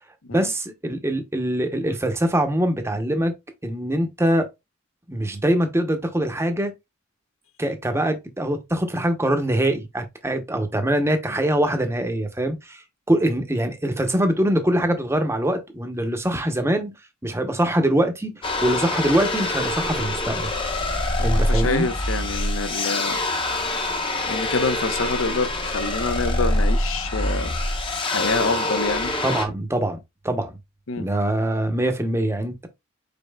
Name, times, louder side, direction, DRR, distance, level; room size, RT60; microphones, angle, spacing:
voice 1, 0.3-3.3 3.6-4.5 5.1-6.7 7.6-12.8 13.1-16.9 17.2-20.5 21.2-21.9 29.2-30.0 30.2-30.5 31.0-32.7, right 1 dB, 10° right, 0.8 m, -23 dB
sound 1, 18.4-29.5, left 1 dB, 25° left, 0.8 m, -25 dB
voice 2, 21.2-23.2 24.3-27.5 28.0-29.1 30.9-31.1, left 3 dB, 70° left, 0.7 m, -26 dB
5.3 x 4.2 x 2.2 m
head